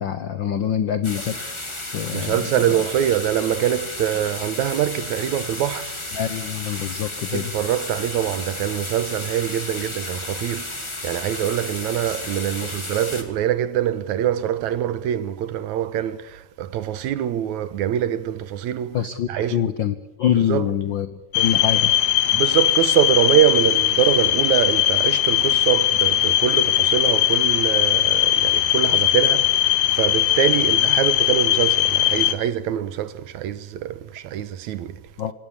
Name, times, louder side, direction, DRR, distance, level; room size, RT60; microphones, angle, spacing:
voice 1, 0.0-1.4 1.9-2.8 6.1-7.5 18.9-22.0 35.2-35.3, left 9 dB, 85° left, 1.0 m, -25 dB
sound 1, 1.0-13.2, left 2 dB, 10° left, 1.5 m, -33 dB
voice 2, 2.1-6.0 7.3-19.0 19.3-19.6 20.5-20.7 22.3-35.0, right 10 dB, 75° right, 2.3 m, -24 dB
sound 2, 21.3-32.3, left 12 dB, 65° left, 2.2 m, -19 dB
25.5 x 17.5 x 8.8 m
omnidirectional pair, 3.6 m